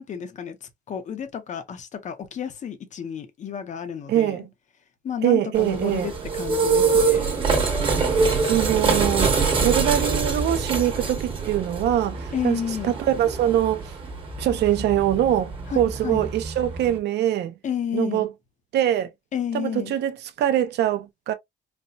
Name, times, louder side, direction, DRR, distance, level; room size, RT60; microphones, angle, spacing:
voice 1, 0.0-4.4 5.0-7.3 12.3-12.9 15.7-16.3 17.6-18.3 19.3-19.9, left 8 dB, 40° left, 0.7 m, -31 dB
voice 2, 4.1-4.5 5.2-6.1 8.4-9.3 9.6-13.9 14.4-17.5 17.9-18.3 18.7-19.1 19.5-21.3, right 11 dB, 70° right, 0.5 m, -23 dB
sound 1, 5.5-17.0, right 4 dB, 30° right, 1.2 m, -25 dB
4.2 x 2.1 x 2.4 m
cardioid pair, 165°, 18 cm